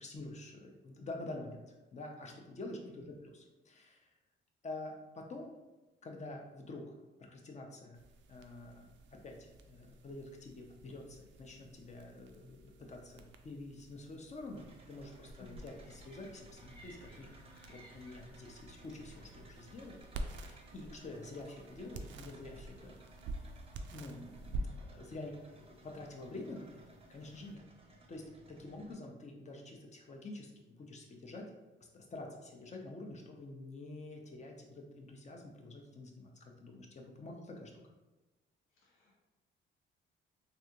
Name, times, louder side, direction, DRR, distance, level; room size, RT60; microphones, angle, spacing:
voice 1, 0.0-4.1 4.6-5.5 6.0-6.9 7.3-8.0 8.3-8.8 9.2-17.3 17.7-20.0 20.3-22.9 23.9-26.8 27.1-27.6 28.1-28.2 28.5-30.5 30.8-31.4 31.9-37.7, left 2 dB, 35° left, 1 dB, 0.7 m, -47 dB
voice 2, 2.8-3.1 15.4-15.6 38.7-39.2, left 3 dB, 80° left, -3 dB, 0.7 m, -57 dB
sound 1, 7.9-27.5, right 2 dB, 70° right, 0.4 m, -49 dB
sound 2, 14.6-28.9, right 2 dB, 30° right, 0.6 m, -60 dB
sound 3, 15.8-21.2, right 1 dB, 5° left, 1.0 m, -62 dB
3.4 x 2.5 x 2.9 m, 1.1 s
cardioid pair, 90°, 20 cm